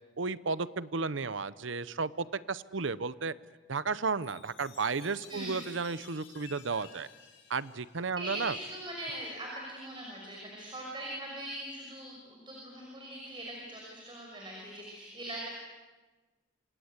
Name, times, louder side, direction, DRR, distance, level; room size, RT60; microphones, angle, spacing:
voice 1, 0.2-3.3 3.7-7.1 7.5-8.6, right 4 dB, 85° right, 16 dB, 0.8 m, -33 dB
Chime, 4.2-8.8, left 8 dB, 80° left, 4.8 m, -55 dB
voice 2, 8.2-15.5, right 1 dB, 25° right, -1 dB, 5.9 m, -41 dB
27.5 x 26.0 x 8.2 m, 1.3 s
head